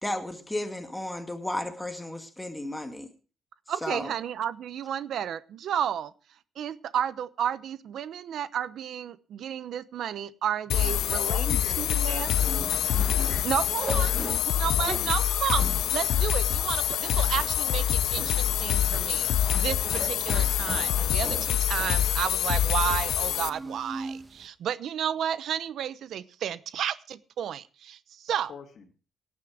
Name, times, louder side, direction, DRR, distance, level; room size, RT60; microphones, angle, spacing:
voice 1, 0.0-3.1 3.8-4.1, left 1 dB, 5° left, 5 dB, 2.1 m, -33 dB
voice 2, 3.7-6.1 6.6-12.3 13.4-28.5, right 9 dB, 60° right, 15 dB, 0.8 m, -32 dB
sound 1, 10.7-23.5, left 11 dB, 80° left, 0.8 m, -26 dB
voice 3, 10.7-12.8 13.9-14.4 14.8-15.1 28.5-28.9, left 6 dB, 50° left, 5 dB, 2.7 m, -41 dB
sound 2, 12.1-24.5, right 2 dB, 15° right, 1.9 m, -41 dB
17.5 x 9.9 x 4.9 m, 0.35 s
cardioid pair, 150°, 0 cm